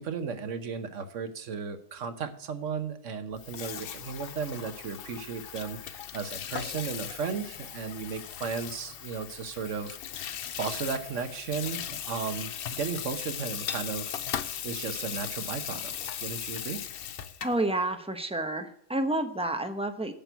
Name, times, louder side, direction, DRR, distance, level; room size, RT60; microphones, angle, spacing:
voice 1, 0.0-10.0 10.2-14.1 14.6-16.8, right 5 dB, 75° right, 9 dB, 1.3 m, -35 dB
Water tap faucet / Sink (filling or washing), 3.3-17.6, left 9 dB, 55° left, 0.7 m, -38 dB
voice 2, 17.4-20.1, right 2 dB, 5° right, 6 dB, 0.8 m, -29 dB
8.7 x 6.1 x 8.1 m, 0.69 s
omnidirectional pair, 1.3 m